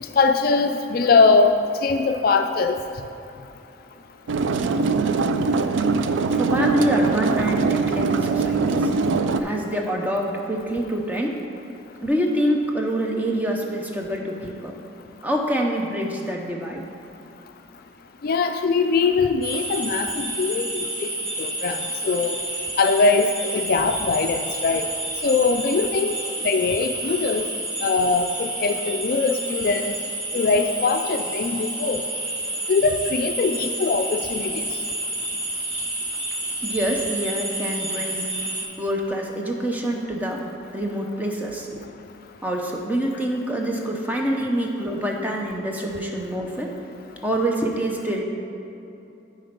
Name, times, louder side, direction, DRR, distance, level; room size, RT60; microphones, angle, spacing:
voice 1, 0.2-1.5 1.8-2.8 18.2-21.1 21.4-21.8 22.0-22.4 22.8-23.3 23.5-24.9 25.2-26.2 26.4-27.5 27.8-29.9 30.3-32.0 32.7-34.5, left 4 dB, 50° left, 6 dB, 0.3 m, -21 dB
sound 1, 4.3-9.4, right 4 dB, 75° right, 0.4 m, -22 dB
voice 2, 6.3-8.9 9.4-11.3 12.0-14.7 15.2-16.9 36.6-38.2 38.8-40.4 40.7-41.8 42.4-46.7 47.2-48.2, right 1 dB, 10° right, 0 dB, 0.7 m, -26 dB
sound 2, 19.4-38.6, right 1 dB, 25° right, 1.4 m, -29 dB
9.9 x 4.3 x 5.2 m, 2.9 s
head